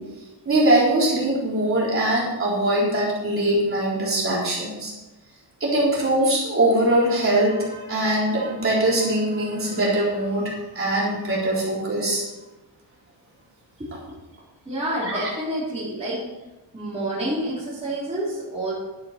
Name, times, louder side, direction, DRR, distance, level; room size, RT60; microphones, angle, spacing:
voice 1, 0.5-4.9 5.6-12.2 15.0-15.3, right 1 dB, 30° right, -6 dB, 3.9 m, -22 dB
voice 2, 14.6-16.2 16.7-18.7, right 1 dB, 15° right, -9 dB, 3.3 m, -28 dB
11.0 x 9.4 x 4.3 m, 1.1 s
wide cardioid pair, 170°, 43 cm